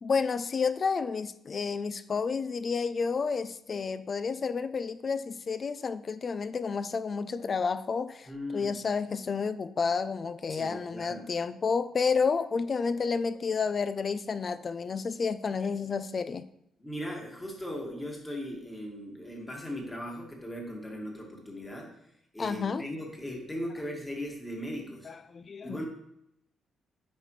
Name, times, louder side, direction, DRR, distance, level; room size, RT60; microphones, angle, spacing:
voice 1, 0.0-16.5 22.4-22.8 25.1-25.8, left 5 dB, 40° left, 13 dB, 0.4 m, -30 dB
voice 2, 8.3-8.7 10.5-11.3 16.8-21.9 22.3-25.1 25.6-25.8, equal, 15° left, 0 dB, 1.8 m, -38 dB
8.5 x 5.0 x 3.2 m, 0.79 s
cardioid pair, 90°, 0 cm